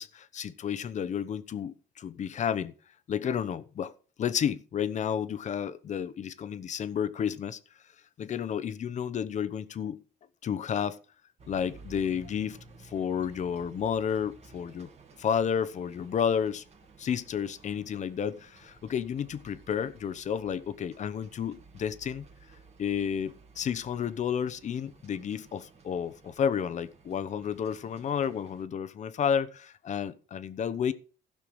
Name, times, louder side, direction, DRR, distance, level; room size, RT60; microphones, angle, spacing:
voice 1, 0.0-2.7 3.1-3.9 4.2-7.6 8.2-10.0 10.4-11.0 11.5-14.9 15.2-16.6 17.0-22.2 22.8-30.9, left 8 dB, 45° left, 0.9 m, -31 dB
sound 1, 11.4-28.6, right 4 dB, 40° right, 2.1 m, -55 dB
15.5 x 5.8 x 4.9 m
cardioid pair, 110°, 17 cm